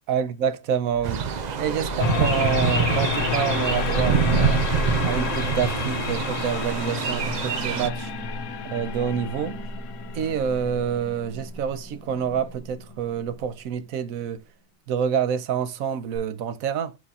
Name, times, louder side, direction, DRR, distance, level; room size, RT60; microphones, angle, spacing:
voice 1, 0.1-1.3 1.6-4.6 5.0-8.1 8.7-9.6 10.1-14.4 14.9-17.0, right 8 dB, 85° right, 1.2 m, -27 dB
sound 1, 0.9-13.8 16.1-16.2, right 1 dB, 10° left, 1.9 m, -33 dB
sound 2, 1.0-7.9, right 8 dB, 65° right, 0.4 m, -26 dB
sound 3, 2.0-13.1, left 10 dB, 70° left, 1.0 m, -31 dB
4.8 x 4.1 x 5.4 m
omnidirectional pair, 1.4 m